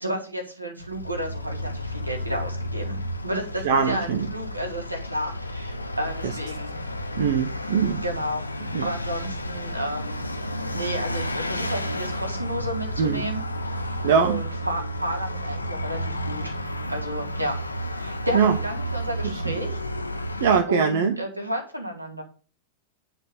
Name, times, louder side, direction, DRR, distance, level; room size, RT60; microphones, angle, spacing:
voice 1, 0.0-3.0 3.2-6.8 8.0-10.2 10.7-16.5 16.9-17.6 17.9-19.8 20.7-22.2, equal, 85° right, 3 dB, 2.3 m, -32 dB
Vehicle, 0.8-20.6, equal, 85° left, 0.8 m, -31 dB
voice 2, 3.6-4.3 6.2-6.4 7.2-8.0 8.7-8.9 13.0-13.3 14.0-14.4 18.3-18.6 19.2-19.5 20.4-21.2, right 6 dB, 55° right, 6 dB, 0.9 m, -22 dB
9.6 x 4.4 x 6.7 m, 0.37 s
figure-of-eight pair, 90°, 0 cm